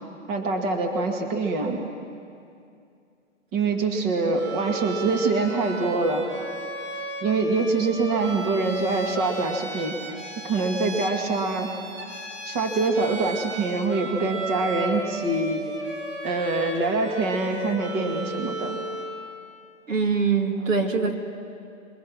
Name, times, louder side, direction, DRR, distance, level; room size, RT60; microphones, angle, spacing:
voice 1, 0.3-1.9 3.5-6.2 7.2-10.0 10.4-11.7 12.5-15.7 16.2-18.8, right 3 dB, 30° right, 3 dB, 2.0 m, -25 dB
Bowed string instrument, 4.3-19.2, right 2 dB, 60° right, 4.8 m, -35 dB
voice 2, 19.9-21.1, right 5 dB, 90° right, 4 dB, 2.4 m, -23 dB
23.0 x 19.0 x 6.1 m, 2.4 s
hypercardioid pair, 145°, 38 cm